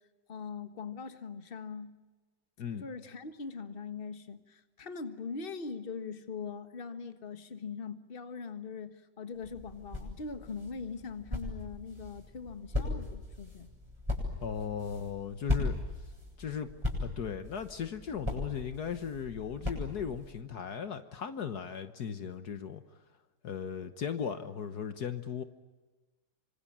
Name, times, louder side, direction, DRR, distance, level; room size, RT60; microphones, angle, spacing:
voice 1, 0.3-1.9 2.8-13.7, left 5 dB, 30° left, 10 dB, 1.6 m, -41 dB
sound 1, 9.4-20.3, left 2 dB, 15° right, 7.9 m, -38 dB
voice 2, 14.4-15.8 16.4-16.7 17.0-22.8 23.4-25.4, left 7 dB, 65° left, 10 dB, 1.7 m, -37 dB
26.0 x 26.0 x 8.7 m, 1.2 s
omnidirectional pair, 1.9 m